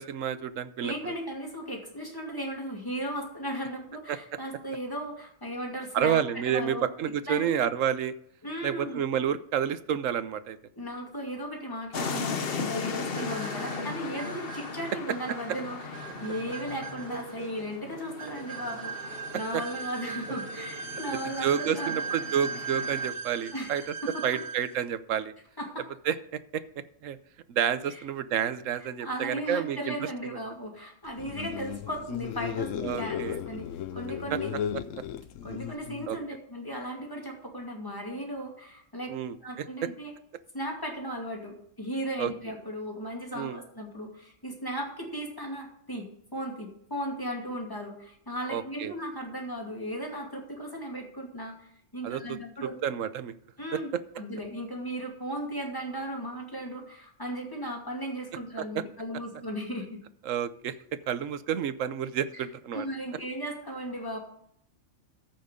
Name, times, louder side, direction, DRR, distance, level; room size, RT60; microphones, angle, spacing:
voice 1, 0.0-1.1 4.1-4.2 5.9-8.1 8.6-10.6 21.4-23.8 24.2-25.3 26.1-26.2 27.0-27.2 27.5-29.9 30.3-30.4 32.8-33.4 34.3-34.4 36.1-36.2 39.1-39.6 42.2-42.3 43.3-43.6 48.5-48.9 52.0-53.3 58.6-58.8 60.3-60.7 61.1-62.9, right 9 dB, 90° right, 13 dB, 1.1 m, -29 dB
voice 2, 0.8-6.9 7.3-7.7 8.4-9.0 10.8-15.8 16.2-22.0 23.5-23.7 24.0-24.4 25.6-25.8 27.9-28.0 29.0-34.5 35.4-39.1 39.4-40.1 40.5-52.8 53.6-53.9 54.2-60.0 62.3-62.4 62.7-64.2, equal, 15° left, 0 dB, 2.5 m, -36 dB
sound 1, 11.9-23.1, left 5 dB, 50° left, 1.1 m, -38 dB
sound 2, 12.9-24.8, right 5 dB, 50° right, 1.2 m, -39 dB
sound 3, 31.1-36.2, left 9 dB, 80° left, 1.0 m, -35 dB
14.0 x 6.1 x 5.2 m, 0.68 s
omnidirectional pair, 1.3 m